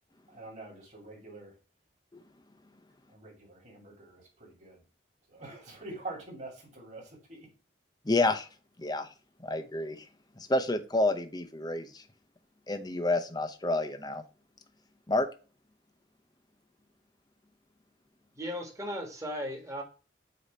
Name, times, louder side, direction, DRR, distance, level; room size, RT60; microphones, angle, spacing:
voice 1, 0.3-1.5 3.1-4.8 5.3-7.5, right 2 dB, 40° right, -1 dB, 2.6 m, -45 dB
voice 2, 8.1-8.5 8.8-9.1 9.4-10.0 10.5-12.0 12.7-14.2 15.1-15.3, left 2 dB, 20° left, 8 dB, 0.7 m, -29 dB
voice 3, 18.3-19.8, equal, 15° right, 2 dB, 1.5 m, -36 dB
8.2 x 2.9 x 4.2 m, 0.35 s
head